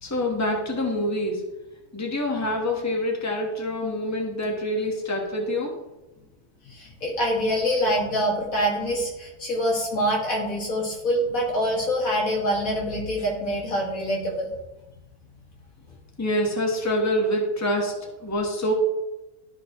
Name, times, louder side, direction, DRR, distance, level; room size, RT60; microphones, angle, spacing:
voice 1, 0.0-1.4 1.9-5.7 16.2-17.9 18.2-18.7, left 1 dB, 15° left, 0 dB, 1.2 m, -26 dB
voice 2, 6.7-14.5, equal, 90° left, -2 dB, 2.4 m, -25 dB
12.5 x 4.6 x 3.0 m, 1.0 s
omnidirectional pair, 1.4 m